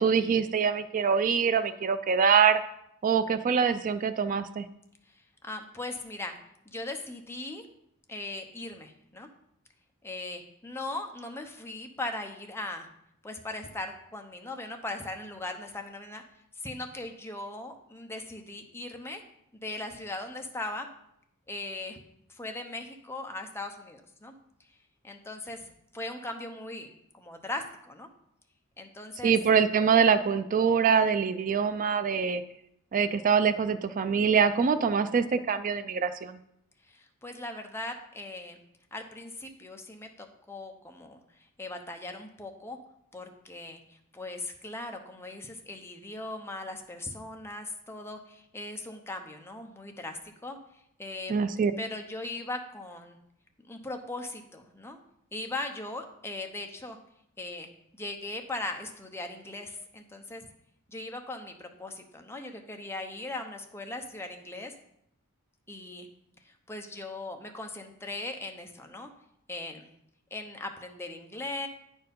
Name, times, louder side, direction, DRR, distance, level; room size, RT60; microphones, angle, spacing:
voice 1, 0.0-2.6 3.0-4.6 29.2-32.4 32.9-36.4 51.3-51.7, right 6 dB, 40° right, 11 dB, 0.4 m, -24 dB
voice 2, 5.1-6.3 6.6-7.6 8.1-9.3 10.0-12.9 13.2-16.2 16.5-19.2 19.6-20.9 21.5-22.0 22.3-24.3 25.0-28.1 28.8-29.4 36.8-38.6 38.9-42.8 43.1-50.6 51.0-51.4 51.8-53.2 53.7-55.0 55.3-57.0 57.4-60.5 60.9-64.7 65.7-66.1 66.4-69.1 69.5-69.9 70.3-71.7, left 2 dB, 10° left, 4 dB, 0.8 m, -39 dB
9.4 x 4.5 x 5.3 m, 0.75 s
head